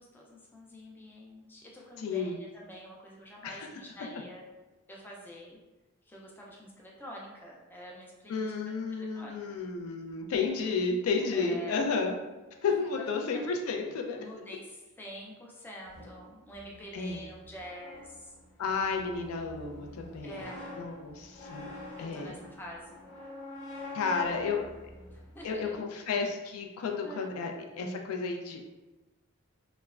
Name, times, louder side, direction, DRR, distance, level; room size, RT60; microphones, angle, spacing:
voice 1, 0.0-4.4 4.9-5.6 6.1-8.5 8.9-9.4 11.3-11.8 13.0-13.1 13.3-13.5 14.2-18.3 20.2-20.6 22.0-23.1 24.2-24.3 25.1-25.9 27.0-27.3, equal, 10° left, -3 dB, 0.4 m, -47 dB
voice 2, 2.0-2.4 3.4-3.7 8.3-12.2 12.6-14.3 16.9-17.2 18.6-22.3 23.9-24.7 25.4-28.6, left 4 dB, 85° left, 3 dB, 0.4 m, -32 dB
sound 1, 15.9-25.8, left 2 dB, 55° left, 1.2 m, -46 dB
3.0 x 2.1 x 2.3 m, 1.1 s
head